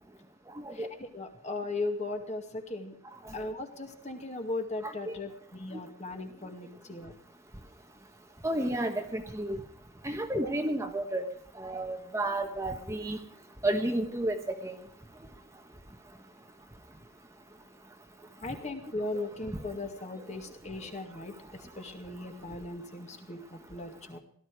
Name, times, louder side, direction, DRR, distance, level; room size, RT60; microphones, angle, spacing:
voice 1, 0.7-2.9 3.3-7.1 10.3-10.5 18.4-21.4 21.8-24.2, left 2 dB, 35° left, 5 dB, 2.2 m, -37 dB
voice 2, 8.4-9.6 10.0-11.3 11.6-13.2 13.6-14.3 14.6-14.7, right 1 dB, 15° right, 5 dB, 1.2 m, -31 dB
17.5 x 13.0 x 4.8 m, 0.63 s
head